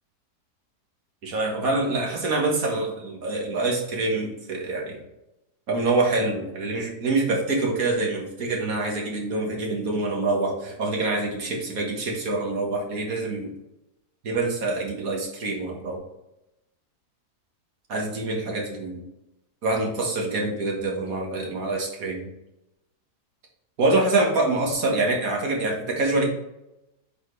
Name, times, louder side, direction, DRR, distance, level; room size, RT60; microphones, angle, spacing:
voice 1, 1.2-5.0 5.7-13.5 14.2-16.0 17.9-19.0 19.6-22.3 23.8-26.3, right 2 dB, 60° right, -1 dB, 1.8 m, -25 dB
8.0 x 4.3 x 3.2 m, 0.91 s
omnidirectional pair, 1.7 m